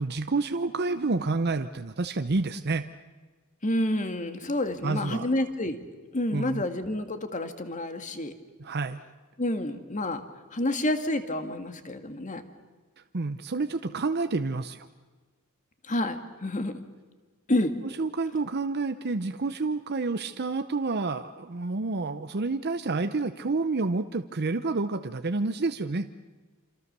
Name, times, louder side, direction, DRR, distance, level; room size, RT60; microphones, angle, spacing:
voice 1, 0.0-2.9 4.8-5.3 6.3-6.6 8.6-9.0 13.0-14.9 18.0-26.1, right 3 dB, 50° right, 9 dB, 0.8 m, -29 dB
voice 2, 3.6-5.8 6.1-8.3 9.4-10.2 10.5-12.4 15.9-16.7 17.5-17.7, left 1 dB, 35° left, 7 dB, 2.0 m, -29 dB
28.0 x 26.5 x 6.8 m, 1.4 s
head